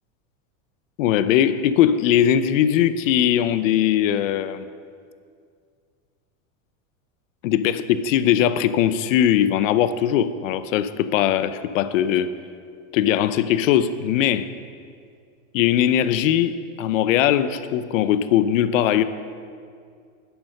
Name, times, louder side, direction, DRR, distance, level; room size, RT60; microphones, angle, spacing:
voice 1, 1.0-4.7 7.4-12.3 12.9-14.5 15.5-19.0, left 10 dB, 65° left, 13 dB, 0.8 m, -20 dB
11.0 x 10.0 x 6.6 m, 2.2 s
supercardioid pair, 165°, 43 cm